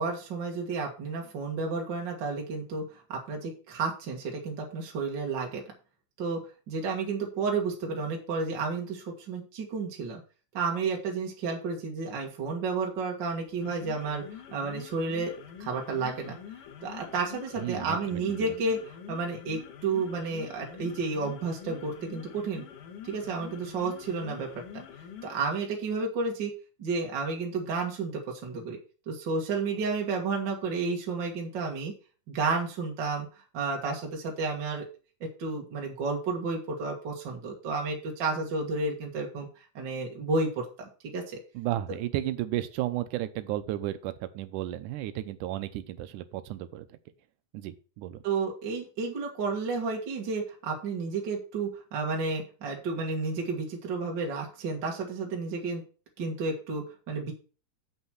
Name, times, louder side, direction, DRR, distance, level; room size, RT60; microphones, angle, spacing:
voice 1, 0.0-5.6 6.2-6.4 6.7-10.2 10.5-14.3 14.5-15.3 15.6-16.4 16.8-18.8 19.1-22.6 23.0-24.5 25.2-26.5 26.8-28.8 29.1-31.9 32.3-33.3 33.5-34.8 35.2-39.5 39.7-41.4 48.2-55.8 56.2-57.3, right 4 dB, 40° right, 1 dB, 2.1 m, -31 dB
sound 1, 13.5-25.5, left 8 dB, 85° left, 2.9 m, -45 dB
voice 2, 17.6-18.5 41.5-47.0 47.5-48.2, right 14 dB, 90° right, 11 dB, 2.2 m, -33 dB
7.8 x 5.6 x 5.9 m, 0.37 s
omnidirectional pair, 3.6 m